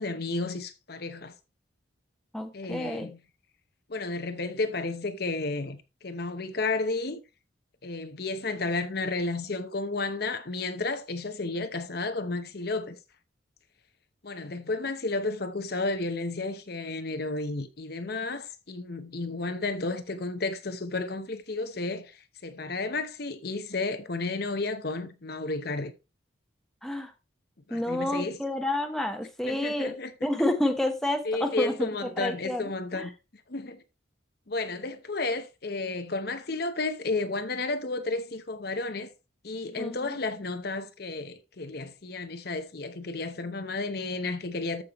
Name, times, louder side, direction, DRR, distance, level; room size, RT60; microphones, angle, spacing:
voice 1, 0.0-1.3 2.5-3.2 3.9-7.2 7.8-13.0 14.2-25.9 27.7-28.4 29.4-30.1 31.2-33.1 33.5-33.8 34.5-39.1 39.4-44.8, left 3 dB, 55° left, 0.9 m, -32 dB
voice 2, 2.3-3.1 26.8-27.1 27.7-29.9 30.2-32.6 32.9-33.1 39.8-40.0, left 1 dB, ahead, 1.1 m, -29 dB
14.0 x 5.7 x 3.1 m
head